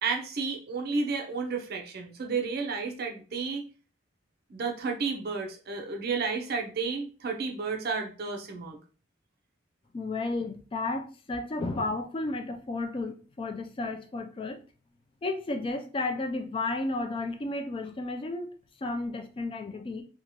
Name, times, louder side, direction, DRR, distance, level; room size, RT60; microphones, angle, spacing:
voice 1, 0.0-3.7 4.5-8.8, right 4 dB, 55° right, 2 dB, 0.6 m, -32 dB
voice 2, 9.9-14.6 15.2-18.5 18.8-20.0, left 2 dB, 25° left, 5 dB, 0.4 m, -33 dB
2.8 x 2.3 x 2.9 m, 0.36 s
head